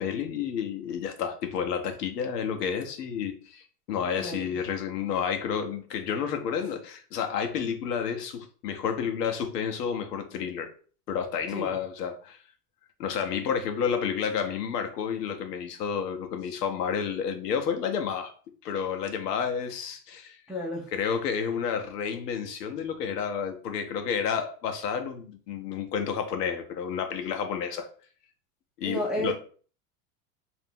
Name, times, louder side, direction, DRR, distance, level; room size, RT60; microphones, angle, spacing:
voice 1, 0.0-10.7 11.1-12.4 13.0-18.3 18.6-20.4 20.9-27.9 28.8-29.3, left 7 dB, 85° left, 0.7 m, -30 dB
voice 2, 4.2-4.5 11.5-11.7 20.5-20.9 28.8-29.3, equal, ahead, 0.4 m, -31 dB
2.4 x 2.0 x 3.3 m
hypercardioid pair, 90°, 47 cm